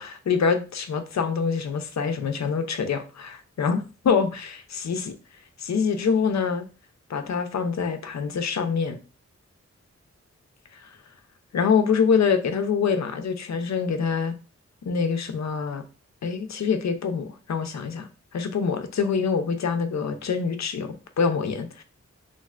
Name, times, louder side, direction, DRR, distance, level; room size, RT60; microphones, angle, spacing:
voice 1, 0.0-4.5 4.8-5.1 5.6-6.7 7.1-9.0 11.5-14.3 14.9-15.8 16.2-18.1 18.3-21.8, left 6 dB, 70° left, 8 dB, 0.5 m, -25 dB
3.2 x 2.5 x 2.4 m, 0.33 s
wide cardioid pair, 80°, 29 cm